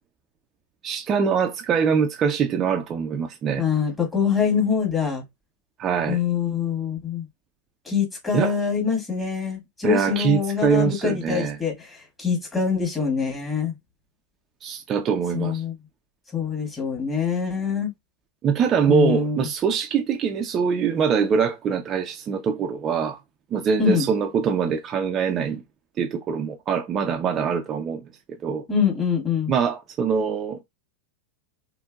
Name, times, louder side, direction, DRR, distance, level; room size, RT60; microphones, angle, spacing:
voice 1, 0.8-3.6 5.8-6.2 8.3-8.5 9.8-11.6 14.6-15.6 18.4-23.2 23.5-25.6 26.0-28.0 28.4-28.6 29.5-30.6, right 6 dB, 30° right, 0.6 m, -23 dB
voice 2, 3.6-5.2 6.1-7.3 7.9-13.7 15.3-15.8 16.3-17.9 18.9-19.5 23.8-24.1 28.7-29.5, left 6 dB, 15° left, 2.1 m, -24 dB
4.3 x 3.6 x 2.4 m
figure-of-eight pair, 90°, 0 cm